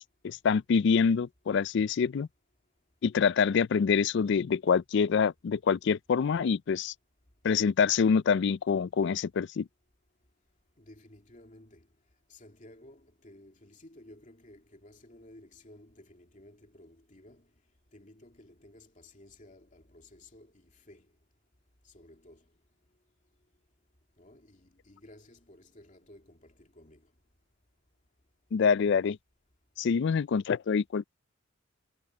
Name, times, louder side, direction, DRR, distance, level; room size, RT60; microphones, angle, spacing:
voice 1, 0.2-2.3 3.0-6.9 7.4-9.7 28.5-29.2 29.8-31.1, left 6 dB, 60° left, 0.4 m, -26 dB
voice 2, 10.8-11.9 12.3-17.5 17.9-21.1 21.8-22.5 24.2-27.1, left 1 dB, 40° left, 2.8 m, -55 dB
head